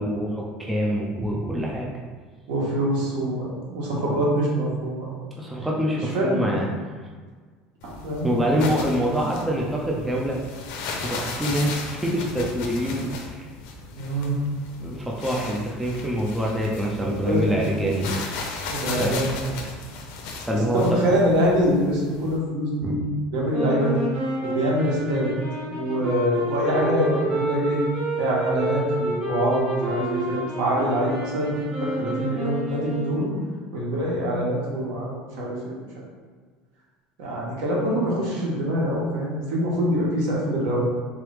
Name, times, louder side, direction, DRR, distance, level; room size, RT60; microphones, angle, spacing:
voice 1, 0.0-1.9 4.0-4.2 5.4-6.7 8.2-10.4 11.0-13.5 14.8-18.2 18.9-19.1 20.5-21.0 22.8-23.0, equal, 5° right, -3 dB, 0.3 m, -25 dB
voice 2, 2.5-5.2 5.9-6.6 8.0-8.4 14.0-14.4 17.0-17.6 18.7-19.3 20.7-23.0 23.3-24.0 24.4-25.3 25.7-27.8 28.1-31.5 31.8-33.3 33.7-35.8 37.2-40.8, equal, 70° right, -4 dB, 1.3 m, -24 dB
sound 1, 7.8-22.4, left 3 dB, 60° left, 0.6 m, -36 dB
sound 2, 23.5-33.5, right 1 dB, 40° right, 1.2 m, -29 dB
3.8 x 3.1 x 3.3 m, 1.5 s
cardioid pair, 180°, 2 cm